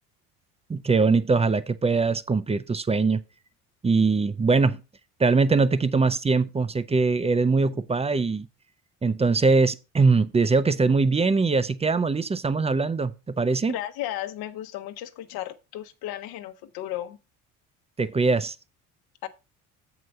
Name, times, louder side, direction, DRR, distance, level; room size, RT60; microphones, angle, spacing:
voice 1, 0.7-3.2 3.8-4.8 5.2-8.5 9.0-13.7 18.0-18.5, right 4 dB, 15° right, 0.6 m, -22 dB
voice 2, 13.7-17.2 19.2-19.3, left 13 dB, 60° left, 1.1 m, -34 dB
7.7 x 4.9 x 5.2 m
hypercardioid pair, 65°, 42 cm